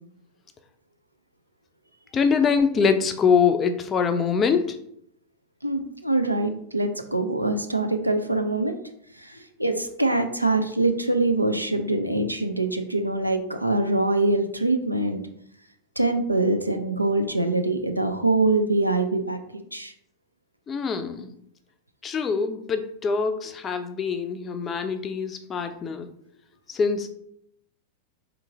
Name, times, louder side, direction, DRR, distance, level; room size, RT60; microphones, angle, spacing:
voice 1, 2.1-4.8 20.7-21.3 22.0-26.1 26.7-27.1, left 6 dB, 25° left, 8 dB, 0.4 m, -24 dB
voice 2, 5.6-8.7 9.2-15.2 16.0-19.9, right 2 dB, 85° right, 6 dB, 0.4 m, -24 dB
3.7 x 3.0 x 3.4 m, 0.70 s
figure-of-eight pair, 90°, 0 cm